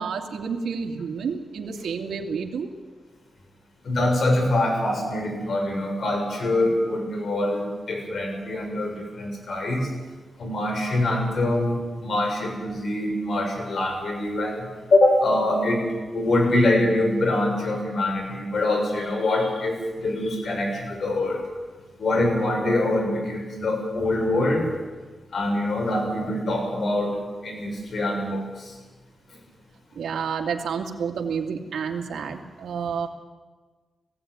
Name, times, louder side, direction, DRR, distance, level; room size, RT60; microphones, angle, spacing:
voice 1, 0.0-2.7 30.0-33.1, right 6 dB, 85° right, 1 dB, 2.3 m, -29 dB
voice 2, 3.8-9.9 10.4-11.8 12.0-14.6 14.9-15.8 16.1-21.4 22.0-24.7 25.3-27.2 27.4-28.7, left 1 dB, 60° left, 1 dB, 6.9 m, -24 dB
19.5 x 16.0 x 9.7 m, 1.4 s
wide cardioid pair, 100°, 0 cm